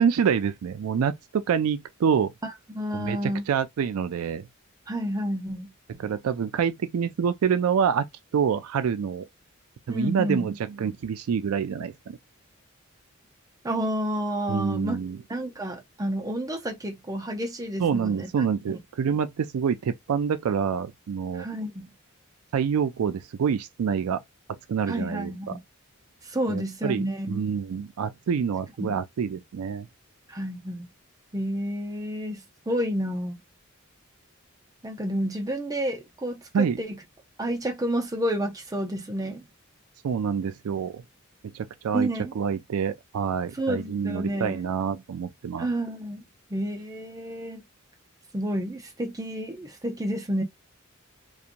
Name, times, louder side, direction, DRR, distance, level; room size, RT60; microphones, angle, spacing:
voice 1, 0.0-2.3 2.9-4.5 6.0-8.0 8.3-9.2 9.9-12.2 14.5-15.2 17.8-21.5 22.5-24.2 24.7-25.5 26.5-29.9 36.5-36.8 40.0-41.0 41.5-42.1 42.4-45.7, right 7 dB, 90° right, 0.4 m, -27 dB
voice 2, 2.4-3.5 4.9-5.7 9.9-10.5 13.6-15.0 15.3-18.3 18.7-18.8 21.3-21.9 24.9-25.6 26.2-27.5 28.8-29.0 30.3-30.9 31.3-33.4 34.8-37.0 37.4-39.5 41.9-42.3 43.5-44.6 45.6-46.2 46.5-47.6 48.3-50.4, equal, 15° right, 0.5 m, -30 dB
2.8 x 2.2 x 2.5 m
head